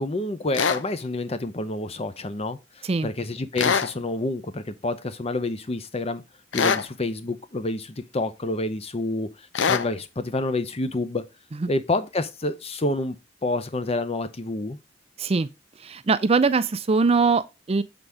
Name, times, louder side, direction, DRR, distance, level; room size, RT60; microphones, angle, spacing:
voice 1, 0.0-2.6 3.0-6.2 6.5-9.3 9.7-11.2 11.7-13.2 13.4-14.8, left 2 dB, 35° left, 0.7 m, -28 dB
sound 1, 0.5-0.8 3.6-3.9 6.5-6.9 9.5-9.9, left 6 dB, 80° left, 0.6 m, -22 dB
voice 2, 15.8-17.8, right 4 dB, 35° right, 0.4 m, -22 dB
6.9 x 4.0 x 4.8 m
head